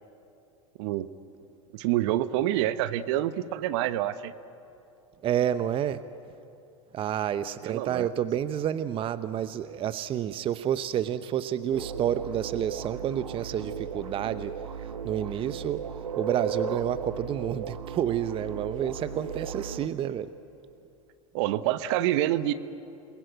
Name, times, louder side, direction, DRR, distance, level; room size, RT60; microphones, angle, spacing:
voice 1, 1.7-4.3 7.6-8.1 21.3-22.5, right 13 dB, 55° right, 14 dB, 1.1 m, -27 dB
voice 2, 5.2-6.0 6.9-14.6 15.0-15.8 16.2-20.3, right 10 dB, 30° right, 13 dB, 0.8 m, -29 dB
sound 1, 11.7-19.9, right 6 dB, 85° right, 1.7 m, -36 dB
28.5 x 21.0 x 9.2 m, 2.7 s
hypercardioid pair, 95°, 17 cm